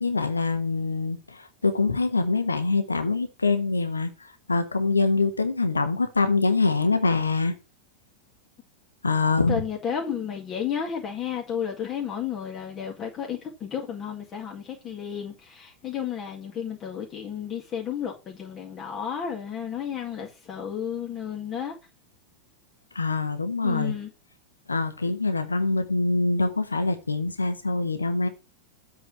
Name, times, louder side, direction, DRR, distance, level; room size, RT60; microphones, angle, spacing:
voice 1, 0.0-7.5 9.0-9.6 22.9-23.9 24.7-28.3, left 3 dB, 80° left, 1.2 m, -24 dB
voice 2, 9.5-21.7 23.6-24.1, left 8 dB, 25° left, 2.0 m, -32 dB
7.9 x 4.1 x 6.9 m
figure-of-eight pair, 90°, 0 cm